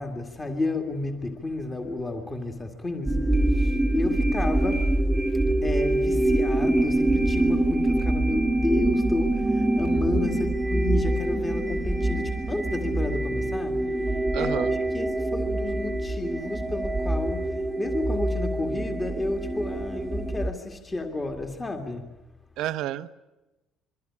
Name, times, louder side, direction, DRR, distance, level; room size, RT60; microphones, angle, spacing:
voice 1, 0.0-4.9 5.5-17.5 17.8-22.1, left 2 dB, 15° left, 2.0 m, -31 dB
sound 1, 3.1-20.5, right 1 dB, 5° right, 1.1 m, -25 dB
voice 2, 14.3-14.7 22.6-23.1, right 13 dB, 65° right, 1.1 m, -30 dB
27.5 x 23.5 x 8.6 m
cardioid pair, 170°, 0 cm